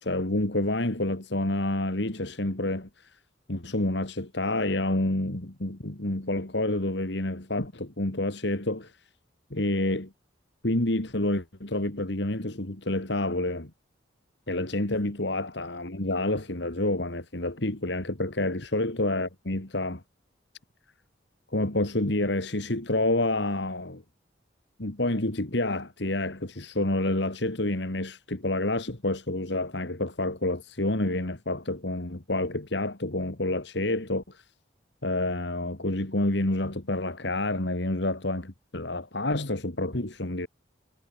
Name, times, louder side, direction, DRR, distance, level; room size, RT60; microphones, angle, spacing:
voice 1, 0.0-3.1 3.5-8.9 9.5-10.1 10.6-13.7 14.5-20.0 21.5-24.0 24.8-34.4 35.0-40.5, left 1 dB, 60° left, 2.3 m, -28 dB
head